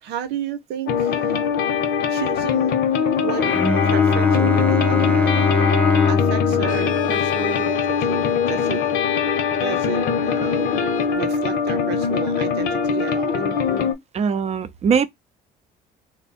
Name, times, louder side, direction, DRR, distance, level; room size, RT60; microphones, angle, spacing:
voice 1, 0.0-1.4 2.1-2.8 3.2-5.4 6.1-8.9 9.6-13.4, right 9 dB, 85° right, 0.7 m, -32 dB
sound 1, 0.9-13.9, left 6 dB, 75° left, 0.9 m, -22 dB
Bowed string instrument, 3.4-8.7, left 4 dB, 10° left, 0.5 m, -23 dB
Brass instrument, 6.6-11.2, left 8 dB, 55° left, 0.5 m, -32 dB
voice 2, 14.1-15.1, right 6 dB, 40° right, 0.6 m, -21 dB
3.3 x 2.2 x 4.2 m
cardioid pair, 110°, 17 cm